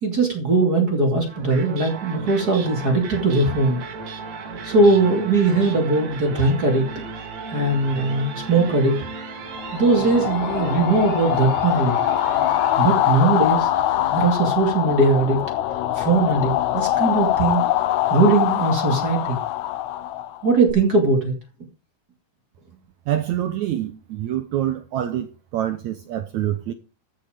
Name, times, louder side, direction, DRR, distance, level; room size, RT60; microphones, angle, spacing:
voice 1, 0.0-3.8 4.6-6.9 7.5-9.0 9.7-12.0 12.8-13.7 14.1-15.4 15.9-17.6 18.1-19.4 20.4-21.3, right 3 dB, 30° right, 2.4 m, -20 dB
sound 1, 1.2-13.5, right 5 dB, 50° right, 2.8 m, -35 dB
sound 2, 9.6-20.7, left 13 dB, 90° left, 1.6 m, -23 dB
voice 2, 23.1-26.7, right 12 dB, 80° right, 1.6 m, -26 dB
14.0 x 7.6 x 5.1 m
omnidirectional pair, 4.4 m